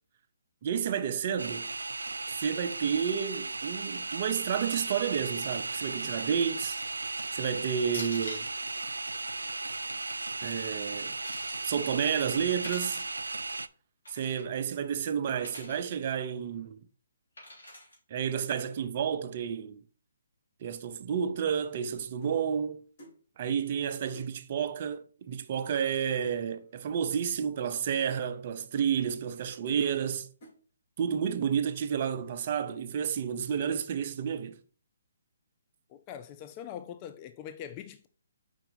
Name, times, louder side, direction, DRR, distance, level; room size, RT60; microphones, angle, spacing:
voice 1, 0.6-1.7 2.4-6.8 7.3-8.5 10.4-11.1 11.6-13.0 14.1-16.8 18.1-19.8 20.6-22.8 23.4-30.3 31.0-34.5, right 7 dB, 40° right, 0.6 m, -31 dB
sound 1, 1.4-13.7, right 3 dB, 85° right, 0.3 m, -36 dB
sound 2, 6.6-7.0 7.9-8.5 9.9-10.3 10.9-11.6 12.5-13.2 14.1-14.4 15.4-15.8 17.4-18.0, left 1 dB, 85° left, 3.0 m, -44 dB
sound 3, 21.3-22.5 23.0-23.2 23.6-23.7 24.1-24.4 25.3-25.4 25.6-25.9 26.2-26.8 27.1-27.3 28.1-28.3 29.0-29.1 29.7-30.0 30.4-30.6 31.2-31.4 31.7-32.0, equal, 45° left, 3.3 m, -55 dB
voice 2, 35.9-38.1, left 9 dB, 30° left, 0.4 m, -42 dB
5.5 x 4.6 x 4.0 m
figure-of-eight pair, 140°, 0 cm